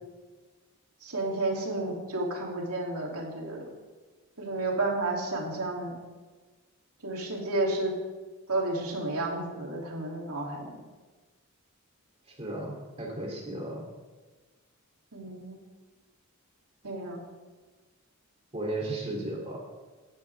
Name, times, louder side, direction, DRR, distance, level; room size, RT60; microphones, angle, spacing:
voice 1, 1.0-3.7 4.4-6.0 7.0-7.9 8.5-10.7 15.1-15.6 16.8-17.2, right 2 dB, 80° right, -2 dB, 2.9 m, -31 dB
voice 2, 12.3-13.8 18.5-19.6, right 1 dB, 25° right, -2 dB, 3.0 m, -35 dB
17.0 x 10.5 x 3.5 m, 1.3 s
head